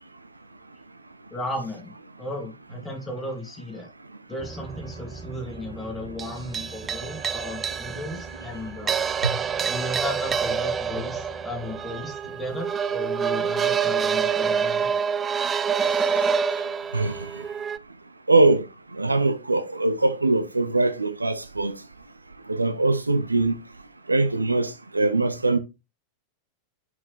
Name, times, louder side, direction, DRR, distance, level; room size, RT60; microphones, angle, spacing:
voice 1, 1.3-3.9 4.3-9.0 9.6-14.9, left 1 dB, 10° left, 2.8 m, -35 dB
sound 1, 4.4-17.8, right 6 dB, 20° right, 0.4 m, -27 dB
voice 2, 16.9-17.5 18.3-21.8 22.5-23.6 24.1-25.6, right 2 dB, 80° right, 0.7 m, -22 dB
6.1 x 5.8 x 3.3 m
figure-of-eight pair, 90°, 0 cm